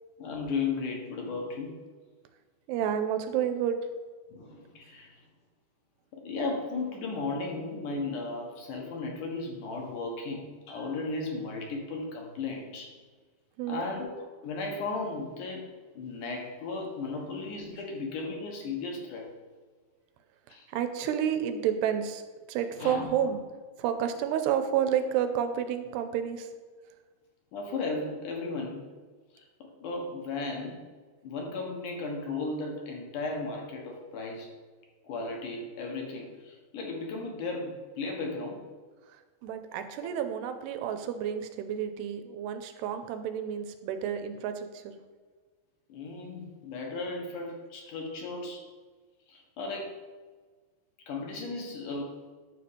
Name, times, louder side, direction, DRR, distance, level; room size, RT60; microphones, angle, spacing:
voice 1, 0.2-1.8 4.3-5.2 6.1-12.9 13.7-14.1 14.4-15.7 16.0-19.3 20.5-20.7 22.8-23.3 27.5-28.9 29.3-29.5 29.8-30.8 31.2-34.5 35.0-38.6 45.9-48.6 49.3-50.0 51.1-52.1, left 3 dB, 60° left, 0 dB, 2.4 m, -35 dB
voice 2, 2.7-3.8 13.6-13.9 20.7-22.2 22.5-23.4 23.8-26.5 39.1-45.0, right 9 dB, 90° right, 8 dB, 2.8 m, -30 dB
10.0 x 4.3 x 6.7 m, 1.5 s
omnidirectional pair, 4.7 m